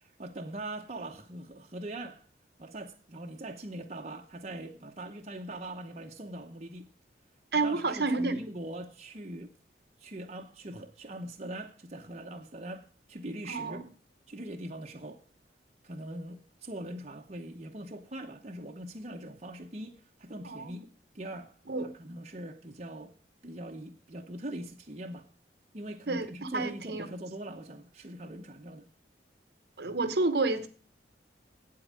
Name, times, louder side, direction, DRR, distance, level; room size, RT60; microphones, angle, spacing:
voice 1, 0.0-2.2 2.6-6.9 7.6-9.5 10.0-13.8 14.3-15.2 15.8-20.8 21.1-21.6 21.8-23.1 23.4-25.3 25.7-28.9, right 1 dB, 35° right, 0.9 m, -42 dB
voice 2, 7.5-8.4 13.5-13.8 20.4-20.8 21.7-21.9 26.1-27.1 29.8-30.7, right 3 dB, 60° right, 1.0 m, -30 dB
8.6 x 8.3 x 7.5 m
head